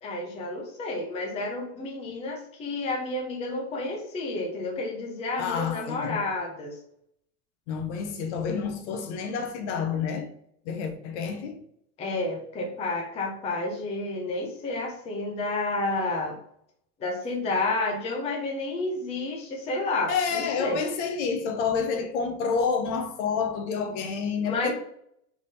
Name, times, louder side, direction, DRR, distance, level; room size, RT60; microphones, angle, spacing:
voice 1, 0.0-6.8 12.0-16.4 17.0-20.8 24.4-24.7, left 2 dB, 15° left, 0.6 m, -30 dB
voice 2, 5.4-6.2 7.7-10.3 10.6-11.6 20.1-24.7, left 5 dB, 50° left, 0.8 m, -29 dB
3.7 x 3.4 x 4.0 m
supercardioid pair, 150°, 44 cm